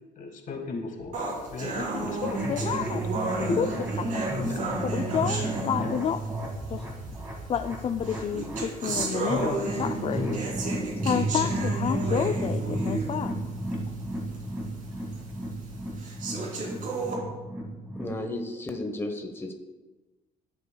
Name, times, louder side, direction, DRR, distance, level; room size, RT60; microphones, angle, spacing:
voice 1, 0.2-2.3 2.8-2.9 3.3-3.7 4.4-4.8 5.3-5.4 5.8-6.0, left 3 dB, 50° left, 3 dB, 1.7 m, -35 dB
sound 1, 1.0-15.9, right 3 dB, 85° right, 2.1 m, -50 dB
sound 2, 1.1-6.3 7.1-7.2 8.0-13.3 13.7-13.8 14.3-14.4 15.1-15.2 16.0-17.1, right 3 dB, 50° right, 2.7 m, -33 dB
voice 2, 2.2-3.0 3.6-3.7 4.1-4.2 4.8-6.2 6.7-6.8 7.5-10.4 11.0-13.3, left 8 dB, 35° left, 8 dB, 0.4 m, -29 dB
sound 3, 2.2-18.2, right 1 dB, 15° right, 1.9 m, -33 dB
voice 3, 18.0-19.5, left 2 dB, 15° left, 4 dB, 1.0 m, -33 dB
15.5 x 6.8 x 2.3 m, 1.2 s
cardioid pair, 110°, 17 cm